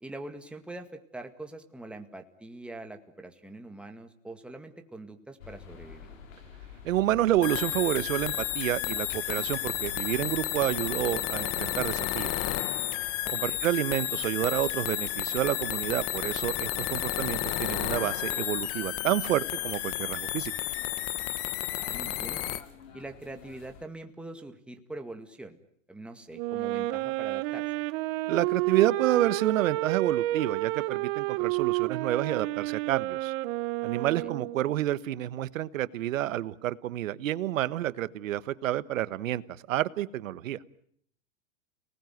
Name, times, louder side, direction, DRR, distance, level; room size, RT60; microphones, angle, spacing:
voice 1, 0.0-6.1 13.2-13.6 21.8-22.5 22.9-25.6 25.9-27.7 34.2-34.3, right 2 dB, 5° right, 5 dB, 2.0 m, -43 dB
sound 1, 5.4-23.9, left 6 dB, 85° left, 5.1 m, -51 dB
voice 2, 6.8-12.3 13.3-20.5 28.3-33.3 33.8-39.4 39.7-40.6, right 13 dB, 80° right, 16 dB, 1.3 m, -29 dB
sound 2, 7.4-22.6, left 14 dB, 35° left, 1.3 m, -32 dB
Wind instrument woodwind instrument, 26.3-34.7, right 19 dB, 45° right, 1.1 m, -30 dB
30.0 x 19.5 x 9.4 m, 0.67 s
supercardioid pair, 140°, 39 cm